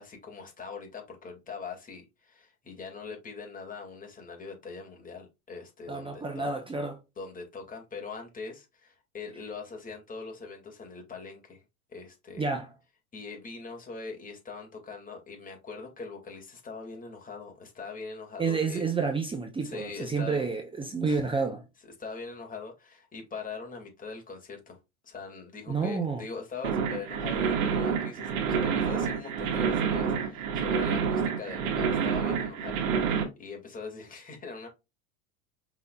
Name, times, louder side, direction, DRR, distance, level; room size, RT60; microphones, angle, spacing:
voice 1, 0.0-6.5 7.2-11.6 11.9-12.5 13.1-18.9 19.6-20.5 21.0-21.2 22.0-24.8 25.0-34.7, left 4 dB, 20° left, 2.2 m, -42 dB
voice 2, 5.9-7.0 12.4-12.7 18.4-21.6 25.7-26.2, right 4 dB, 10° right, 0.8 m, -29 dB
sound 1, 26.6-33.2, right 6 dB, 60° right, 1.7 m, -28 dB
5.4 x 4.1 x 2.3 m
hypercardioid pair, 105°, 45 cm